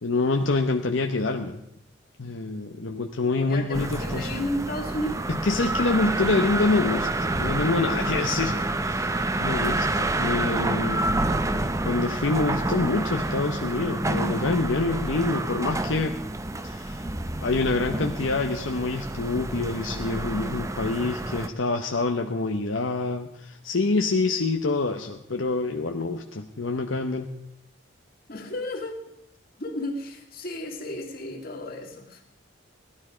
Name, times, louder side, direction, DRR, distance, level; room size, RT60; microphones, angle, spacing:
voice 1, 0.0-1.6 2.2-4.3 5.3-16.2 16.6-17.1 17.4-27.3, left 3 dB, 75° left, 4 dB, 0.9 m, -26 dB
voice 2, 3.3-5.2 28.3-29.0 29.6-32.2, left 1 dB, 50° left, 2 dB, 2.3 m, -33 dB
sound 1, 3.7-21.5, right 2 dB, 15° right, 0.6 m, -28 dB
17.0 x 12.0 x 5.0 m, 0.80 s
head